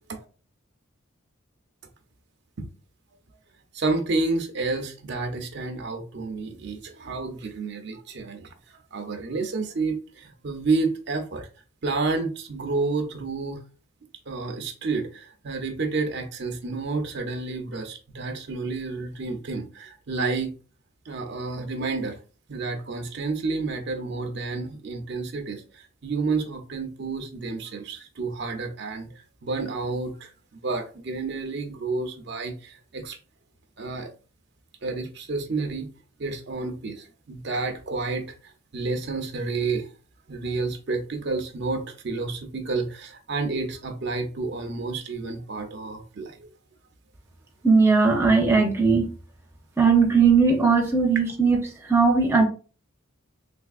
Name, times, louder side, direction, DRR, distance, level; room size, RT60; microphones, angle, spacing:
voice 1, 3.7-8.5 8.9-11.5 11.8-13.6 14.3-20.5 21.1-22.2 22.5-29.1 29.4-30.3 30.6-33.2 33.8-34.1 34.8-35.9 36.2-38.3 38.7-39.9 40.3-46.4, right 3 dB, 50° right, 0.5 m, -30 dB
voice 2, 47.6-49.1 49.8-51.6 51.9-52.4, right 4 dB, 10° right, 0.6 m, -18 dB
3.3 x 3.2 x 2.4 m
head